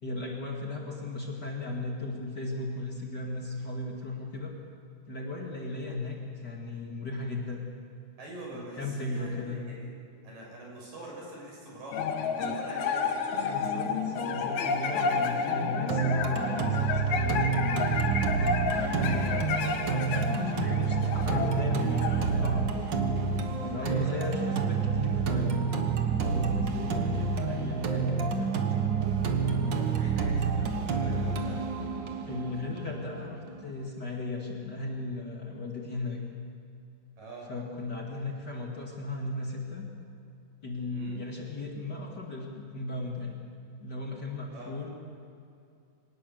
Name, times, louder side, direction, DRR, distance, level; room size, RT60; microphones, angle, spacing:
voice 1, 0.0-4.5 5.1-7.7 8.5-9.6 13.4-18.0 18.3-19.6 19.9-22.7 23.6-25.7 26.1-28.7 32.3-36.2 37.5-39.9 40.6-43.4 43.8-44.9, left 2 dB, 35° left, -1 dB, 2.5 m, -36 dB
voice 2, 8.2-9.9 10.2-13.6 13.9-14.0 14.9-15.2 19.0-19.6 23.7-24.2 29.8-31.6 37.2-37.5 40.9-41.2 44.5-44.7, right 1 dB, 85° right, -3 dB, 8.2 m, -45 dB
sound 1, 11.9-23.5, left 5 dB, 65° left, 2.5 m, -31 dB
sound 2, 15.9-33.9, right 5 dB, 55° right, 1.3 m, -28 dB
24.5 x 18.5 x 6.9 m, 2.5 s
omnidirectional pair, 3.8 m